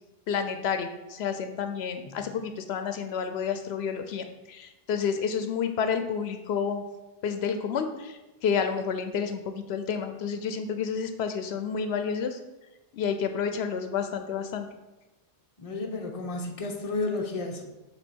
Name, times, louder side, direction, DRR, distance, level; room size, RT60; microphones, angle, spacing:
voice 1, 0.3-6.8 7.2-12.4 12.9-14.7, left 6 dB, 85° left, 8 dB, 0.9 m, -30 dB
voice 2, 15.6-17.6, left 3 dB, 35° left, 2 dB, 0.9 m, -32 dB
7.1 x 3.3 x 6.2 m, 1.0 s
omnidirectional pair, 1.0 m